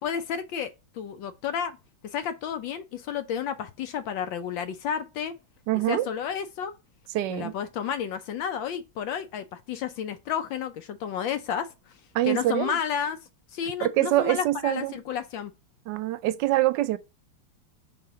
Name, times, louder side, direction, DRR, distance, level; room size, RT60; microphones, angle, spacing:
voice 1, 0.0-1.8 2.0-5.3 5.9-6.7 7.3-11.7 12.2-13.2 13.5-15.5, left 8 dB, 75° left, 1.3 m, -31 dB
voice 2, 5.7-6.1 7.1-7.5 12.1-12.8 13.8-15.0 15.9-17.0, right 15 dB, 75° right, 1.2 m, -25 dB
5.6 x 3.4 x 4.9 m
omnidirectional pair, 2.2 m